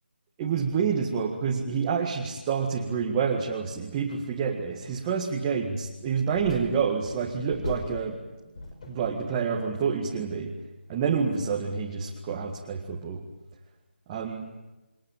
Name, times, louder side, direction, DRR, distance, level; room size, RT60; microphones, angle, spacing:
voice 1, 0.4-8.2 8.9-10.5 10.9-13.2 14.1-14.5, right 6 dB, 15° right, -1 dB, 1.8 m, -28 dB
sound 1, 6.2-8.2 8.6-9.9 10.2-10.4, left 2 dB, 35° left, 5.0 m, -40 dB
29.0 x 22.0 x 8.9 m, 1.0 s
figure-of-eight pair, 165°, 6 cm